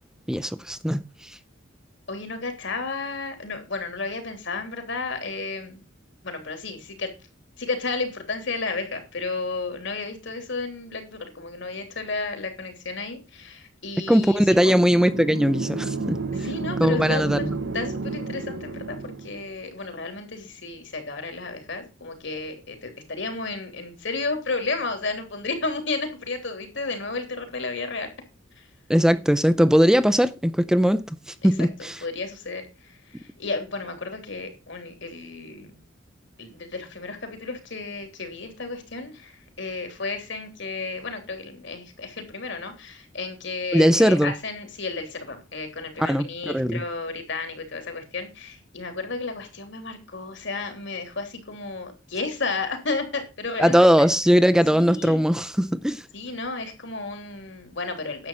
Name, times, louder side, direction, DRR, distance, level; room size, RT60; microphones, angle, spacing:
voice 1, 0.3-1.4 14.1-16.5 16.8-17.6 28.9-32.0 43.7-44.3 46.0-46.8 53.6-56.0, equal, 5° right, 0.5 m, -20 dB
voice 2, 2.1-5.8 6.2-7.1 7.6-14.7 16.3-17.3 17.7-28.1 28.6-28.7 31.4-31.5 32.0-35.8 36.4-53.8 54.7-55.2 56.1-58.3, left 3 dB, 65° left, 3.2 m, -32 dB
sound 1, 14.5-19.5, right 3 dB, 65° right, 0.9 m, -31 dB
10.5 x 7.6 x 5.5 m
head